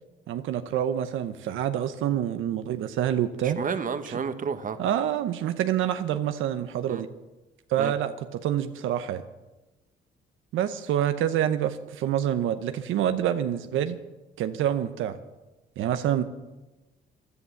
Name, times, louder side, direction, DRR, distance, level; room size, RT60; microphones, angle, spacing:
voice 1, 0.3-3.6 4.1-4.2 4.8-7.1 7.7-9.2 10.5-14.0 14.4-15.2 15.8-16.2, right 10 dB, 85° right, 9 dB, 0.8 m, -27 dB
voice 2, 3.4-4.8 6.9-7.0 7.8-7.9, right 6 dB, 40° right, 10 dB, 1.1 m, -31 dB
15.0 x 11.0 x 7.0 m, 1.1 s
cardioid pair, 90°, 20 cm